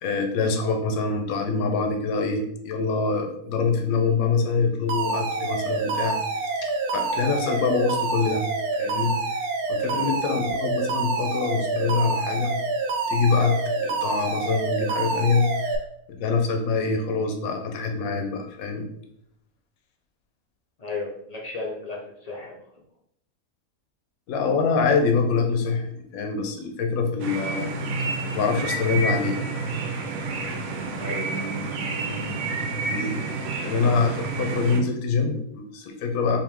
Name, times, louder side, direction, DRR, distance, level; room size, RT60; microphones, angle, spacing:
voice 1, 0.0-6.2 6.6-8.4 8.8-12.6 13.1-15.7 16.1-18.9 24.3-27.7 28.3-29.4 32.8-33.2 33.5-36.4, left 4 dB, 75° left, 3 dB, 1.1 m, -25 dB
Alarm, 4.9-15.8, right 3 dB, 90° right, 1.1 m, -27 dB
voice 2, 20.8-22.7 31.0-31.5, left 3 dB, 55° left, -2 dB, 0.4 m, -34 dB
sound 1, 27.2-34.8, right 3 dB, 65° right, 0.9 m, -29 dB
3.6 x 2.7 x 3.5 m, 0.75 s
omnidirectional pair, 1.5 m